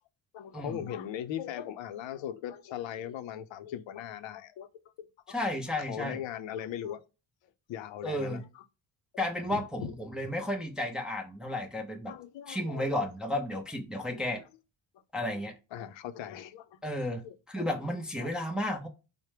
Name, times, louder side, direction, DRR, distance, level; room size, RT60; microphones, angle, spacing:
voice 1, 0.3-4.7 5.0-7.0 7.7-8.6 9.5-9.9 12.1-13.1 14.1-14.3 15.2-15.4 15.7-16.8 17.1-17.7 18.2-18.3, left 10 dB, 70° left, 0.6 m, -40 dB
voice 2, 5.3-6.2 8.0-8.4 9.2-12.1 12.5-14.4 15.1-15.5 16.8-17.2 17.5-18.9, left 1 dB, ahead, 0.5 m, -33 dB
4.4 x 2.1 x 3.1 m
cardioid pair, 135°, 48 cm